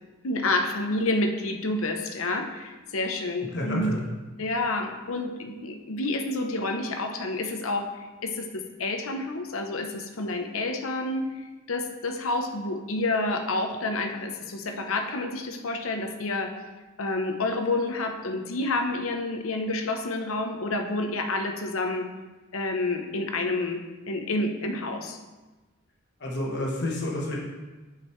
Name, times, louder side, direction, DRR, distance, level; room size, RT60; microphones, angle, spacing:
voice 1, 0.2-3.9 4.4-7.9 8.2-11.4 11.7-16.5 17.0-22.1 22.5-25.2, left 2 dB, 80° left, 4 dB, 0.8 m, -29 dB
voice 2, 3.5-4.0 26.2-27.4, left 1 dB, 55° left, -3 dB, 1.2 m, -29 dB
8.5 x 5.1 x 3.2 m, 1.2 s
head